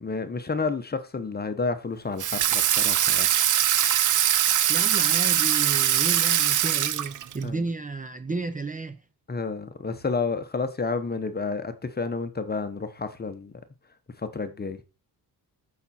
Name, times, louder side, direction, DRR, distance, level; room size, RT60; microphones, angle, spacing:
voice 1, 0.0-3.3 7.4-7.6 9.3-13.5 14.2-14.8, left 4 dB, 25° left, 1.1 m, -30 dB
Water tap faucet / Sink (filling or washing), 2.2-7.4, right 11 dB, 55° right, 0.6 m, -22 dB
voice 2, 4.7-9.0, right 3 dB, 20° right, 0.7 m, -32 dB
13.5 x 6.0 x 4.4 m
wide cardioid pair, 150°, 39 cm